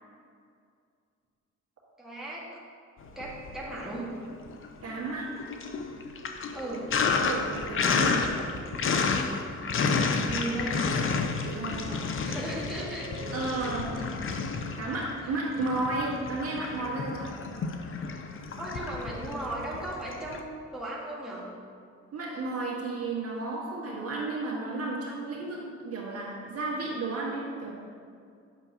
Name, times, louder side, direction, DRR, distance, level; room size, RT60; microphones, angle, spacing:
voice 1, 2.0-2.5 3.1-4.1 6.5-6.9 10.0-10.7 12.2-13.1 18.6-21.5, right 1 dB, ahead, -6 dB, 1.6 m, -36 dB
Sink (filling or washing), 3.1-4.0 4.3-20.4, left 4 dB, 45° left, 0.6 m, -31 dB
voice 2, 4.8-5.3 7.2-8.2 11.5-12.1 13.3-14.2 14.8-17.3 22.1-25.6 25.8-27.7, right 2 dB, 50° right, -4 dB, 1.7 m, -33 dB
sound 1, 6.5-9.3 10.5-12.1 13.0-15.3 16.2-17.9, right 2 dB, 30° right, 0.9 m, -46 dB
8.1 x 6.5 x 2.8 m, 2.3 s
cardioid pair, 90°, 30 cm